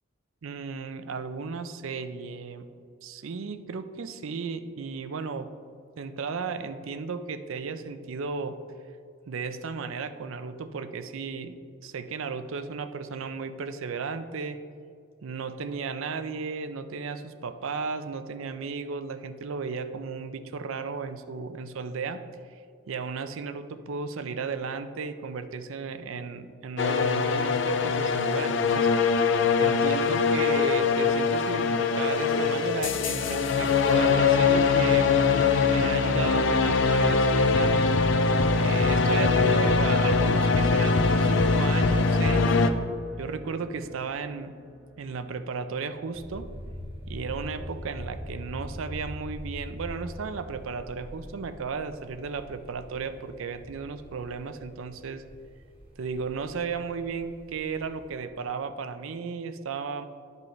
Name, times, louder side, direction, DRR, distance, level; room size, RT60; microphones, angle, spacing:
voice 1, 0.4-2.6 3.0-5.5 6.0-8.6 9.3-11.5 11.8-14.6 15.2-22.3 22.9-28.9 29.6-35.2 35.5-37.8 38.5-42.6 43.2-44.5 45.0-46.5 47.1-55.2 56.0-60.1, right 5 dB, 70° right, 10 dB, 0.4 m, -34 dB
sound 1, 26.8-42.7, left 4 dB, 55° left, 0.4 m, -22 dB
sound 2, 40.3-47.5, right 1 dB, ahead, 0.5 m, -44 dB
sound 3, 46.1-58.1, equal, 25° right, 1.0 m, -43 dB
11.5 x 5.3 x 3.1 m, 2.3 s
head